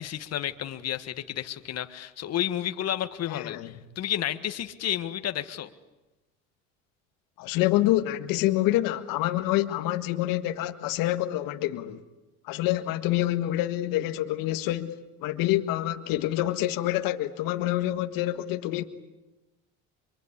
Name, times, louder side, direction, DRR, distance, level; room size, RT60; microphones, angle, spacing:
voice 1, 0.0-5.7, left 11 dB, 45° left, 1.7 m, -31 dB
voice 2, 3.3-3.7 7.4-12.0 12.4-15.0 15.2-18.8, left 15 dB, 70° left, 1.7 m, -27 dB
25.0 x 24.0 x 9.8 m
supercardioid pair, 105°, 35 cm